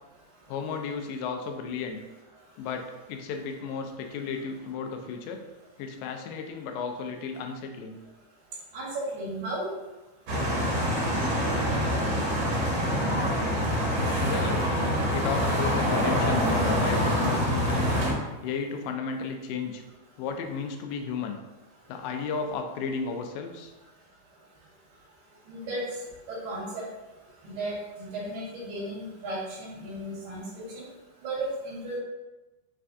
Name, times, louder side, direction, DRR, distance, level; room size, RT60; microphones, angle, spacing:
voice 1, 0.5-2.0 2.6-5.4 5.8-8.0 14.2-14.7 15.1-18.0 18.4-19.8 20.2-21.4 21.9-23.7, left 5 dB, 90° left, 5 dB, 2.2 m, -33 dB
voice 2, 8.7-9.7 25.5-25.9 26.3-26.9 27.4-30.8 31.2-32.0, right 1 dB, 80° right, -7 dB, 2.6 m, -34 dB
sound 1, 10.3-18.1, equal, 60° right, 2.0 m, -25 dB
5.7 x 3.3 x 2.5 m, 1.1 s
omnidirectional pair, 3.9 m